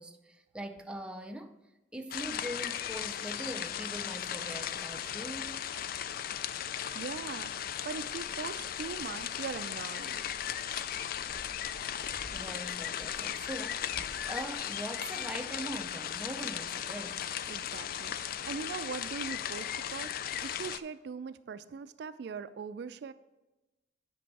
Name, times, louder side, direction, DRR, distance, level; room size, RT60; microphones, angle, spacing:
voice 1, 0.0-1.6 1.9-5.6 12.3-17.3, equal, 5° right, 0.5 m, -42 dB
sound 1, 2.1-20.8, left 9 dB, 55° left, 0.3 m, -37 dB
Dog, 4.8-4.9 5.6-5.7 6.6-14.5, equal, 75° left, 2.1 m, -54 dB
voice 2, 6.9-10.2 17.5-20.1 20.4-23.1, right 5 dB, 70° right, 0.3 m, -41 dB
9.4 x 5.4 x 4.7 m
head